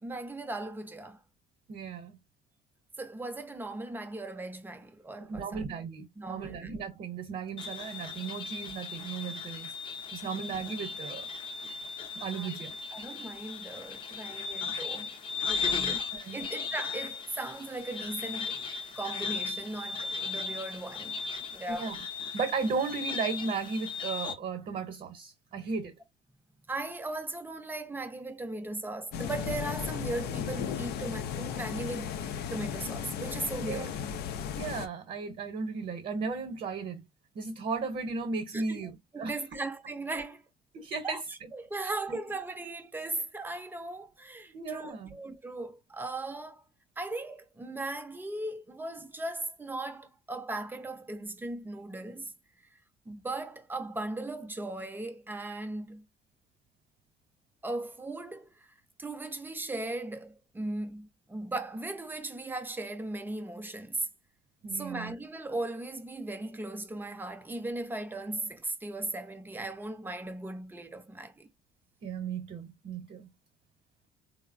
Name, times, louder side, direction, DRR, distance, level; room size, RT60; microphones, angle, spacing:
voice 1, 0.0-1.2 3.0-5.6 6.2-6.7 12.3-12.5 12.9-15.1 15.6-15.9 16.3-21.9 25.6-25.7 26.7-33.9 38.5-40.4 41.0-46.6 47.0-52.3 52.6-52.7 53.1-56.0 57.6-64.1 64.7-71.5, right 2 dB, 10° right, 0.6 m, -38 dB
voice 2, 1.7-2.2 5.2-9.7 10.1-11.3 12.1-12.7 15.6-16.5 21.7-22.0 22.3-25.9 33.6-33.9 34.5-37.0 37.3-39.3 40.7-41.5 41.8-42.2 44.5-45.2 64.6-65.1 72.0-73.3, right 4 dB, 50° right, 0.9 m, -35 dB
sound 1, 7.6-24.3, left 5 dB, 30° left, 0.6 m, -37 dB
sound 2, 29.1-34.9, left 8 dB, 75° left, 0.5 m, -35 dB
3.1 x 2.0 x 2.4 m
cardioid pair, 110°, 17 cm